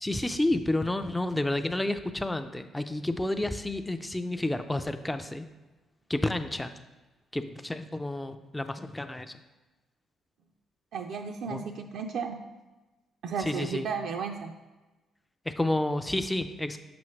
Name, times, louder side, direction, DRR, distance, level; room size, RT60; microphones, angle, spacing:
voice 1, 0.0-5.5 6.1-6.7 7.3-9.3 11.5-11.6 13.4-13.9 15.5-16.8, left 1 dB, 10° left, 8 dB, 0.4 m, -30 dB
voice 2, 10.9-12.4 13.2-14.5, right 6 dB, 75° right, 3 dB, 0.4 m, -34 dB
6.0 x 5.5 x 3.2 m, 1.1 s
cardioid pair, 90°, 0 cm